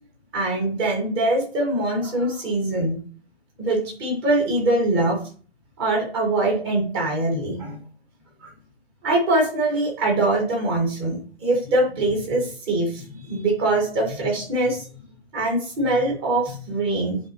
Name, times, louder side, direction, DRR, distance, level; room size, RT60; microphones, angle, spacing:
voice 1, 0.3-3.0 3.6-5.2 5.8-7.8 8.4-8.5 9.0-15.0 15.3-17.2, right 2 dB, 25° right, -1 dB, 2.3 m, -23 dB
10.0 x 4.5 x 3.2 m, 0.42 s
hypercardioid pair, 155°, 32 cm